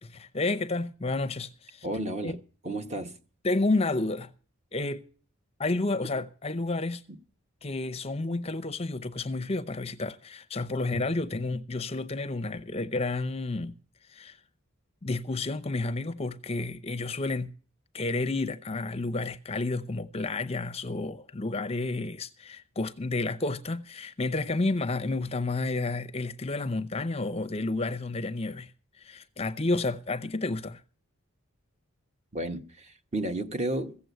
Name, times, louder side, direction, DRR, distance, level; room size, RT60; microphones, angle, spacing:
voice 1, 0.0-1.9 2.2-2.3 3.4-4.3 4.7-5.0 5.6-7.0 7.6-13.7 14.1-14.4 15.0-17.5 17.9-30.8, left 2 dB, 25° left, 0.6 m, -31 dB
voice 2, 1.8-2.4 2.6-3.1 32.3-34.0, right 1 dB, 30° right, 1.2 m, -32 dB
15.5 x 7.8 x 8.1 m
head